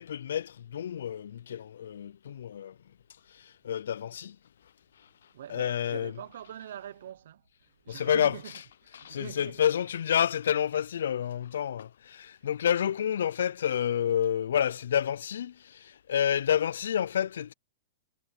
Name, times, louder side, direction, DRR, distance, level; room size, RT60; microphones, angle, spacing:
voice 1, 0.0-2.7 3.6-4.4 5.5-6.1 7.9-8.4 8.9-17.5, left 9 dB, 80° left, 0.4 m, -29 dB
voice 2, 5.3-7.4 7.8-8.6 8.9-9.6, right 10 dB, 70° right, 0.8 m, -43 dB
hypercardioid pair, 150°, 0 cm